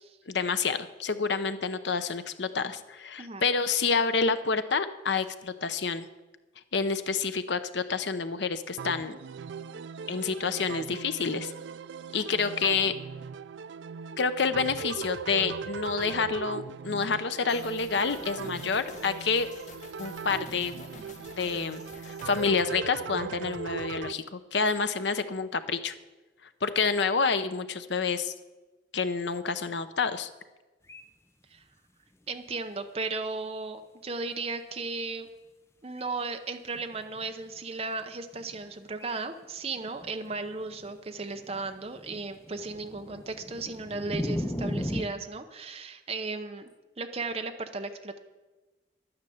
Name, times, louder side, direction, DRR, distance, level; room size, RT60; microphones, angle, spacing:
voice 1, 0.3-6.1 6.7-9.2 10.1-11.5 12.1-12.9 14.2-19.5 20.0-20.8 21.4-25.9 26.6-28.3 28.9-30.3, left 5 dB, 70° left, 11 dB, 0.8 m, -28 dB
sound 1, 8.8-24.1, right 6 dB, 75° right, 0.4 m, -39 dB
sound 2, 17.5-22.5, left 3 dB, 40° left, 1.4 m, -49 dB
sound 3, 30.9-31.0 32.5-32.6 33.1-33.2 36.0-36.1 36.7-37.3 37.8-37.9 38.3-38.6 39.0-39.1 39.4-39.5 39.8-45.0, equal, 15° left, 0.7 m, -36 dB
voice 2, 32.3-35.3 35.8-46.7 47.0-48.2, right 3 dB, 35° right, 6 dB, 0.8 m, -35 dB
11.0 x 9.6 x 7.1 m, 1.2 s
head